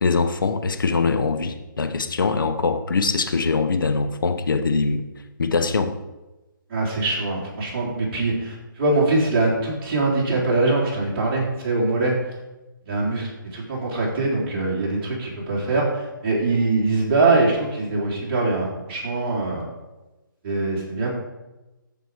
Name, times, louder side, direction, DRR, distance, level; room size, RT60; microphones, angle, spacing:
voice 1, 0.0-5.1 5.4-5.9, left 4 dB, 70° left, 9 dB, 1.0 m, -22 dB
voice 2, 6.7-12.2 12.9-19.7 20.4-21.1, right 2 dB, 30° right, -4 dB, 3.4 m, -23 dB
13.5 x 5.1 x 4.8 m, 1.1 s
hypercardioid pair, 155°, 11 cm